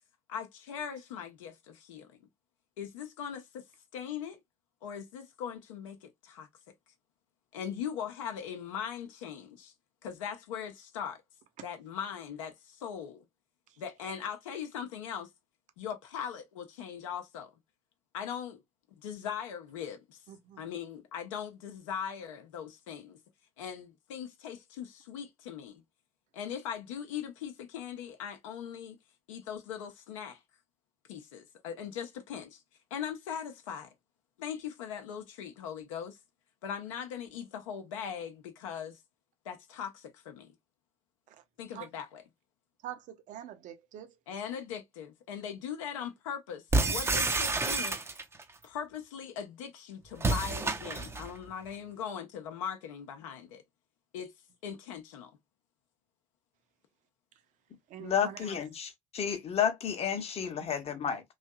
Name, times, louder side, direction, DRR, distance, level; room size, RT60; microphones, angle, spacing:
voice 1, 0.3-2.2 2.8-3.6 3.9-4.4 4.8-6.5 7.5-9.7 10.0-11.2 11.6-13.2 13.8-15.3 15.8-17.5 18.1-18.6 19.0-20.2 20.6-23.2 23.6-25.8 26.3-29.0 29.3-30.4 31.1-32.6 32.9-33.9 34.4-36.2 36.6-39.0 39.4-40.5 41.6-42.2 44.3-48.0 48.6-53.6 54.1-54.3 54.6-55.3, left 8 dB, 70° left, 0.8 m, -40 dB
voice 2, 20.3-20.6 41.7-41.9 42.8-44.1 57.9-58.5, right 11 dB, 50° right, 0.8 m, -44 dB
sound 1, 46.7-48.4 50.2-51.3, right 3 dB, 15° right, 0.6 m, -29 dB
voice 3, 58.0-61.2, left 8 dB, 35° left, 0.9 m, -31 dB
3.2 x 2.6 x 2.3 m
figure-of-eight pair, 65°, 17 cm